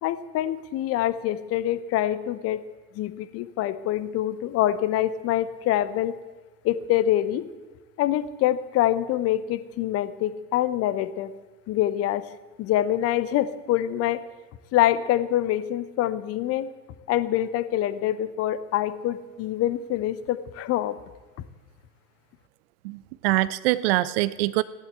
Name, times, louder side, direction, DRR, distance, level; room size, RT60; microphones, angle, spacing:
voice 1, 0.0-2.6 2.9-6.1 6.6-7.4 8.0-11.3 11.7-12.3 12.6-14.2 14.7-16.7 17.1-20.9, left 12 dB, 30° left, 14 dB, 0.9 m, -25 dB
voice 2, 22.8-24.6, right 17 dB, 40° right, 16 dB, 0.5 m, -24 dB
16.0 x 11.0 x 7.9 m, 1.3 s
figure-of-eight pair, 85°, 48 cm